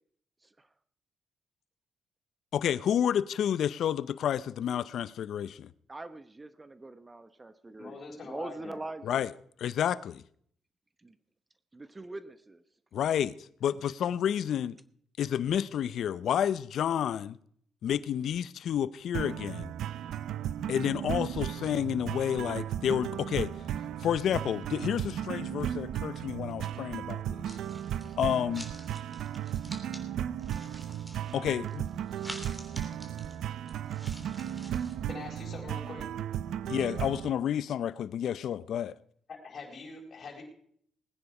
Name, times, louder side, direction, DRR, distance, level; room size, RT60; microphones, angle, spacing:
voice 1, 2.5-5.7 9.0-9.3 9.6-10.2 12.9-13.3 13.6-14.8 15.2-17.4 17.8-19.7 20.7-23.5 24.0-27.6 28.2-28.7 31.3-31.8 36.7-38.9, left 9 dB, 70° left, 0.6 m, -30 dB
voice 2, 5.9-8.0 8.2-9.2 11.0-11.1 11.7-12.6, right 2 dB, 20° right, 0.9 m, -42 dB
voice 3, 7.8-8.8 35.1-36.0 39.3-40.4, left 4 dB, 50° left, 4.4 m, -43 dB
sound 1, 19.1-37.3, right 10 dB, 75° right, 0.6 m, -35 dB
sound 2, 27.5-28.1 28.5-30.0 30.4-35.0, equal, 5° right, 3.3 m, -48 dB
19.5 x 9.8 x 4.8 m
cardioid pair, 85°, 0 cm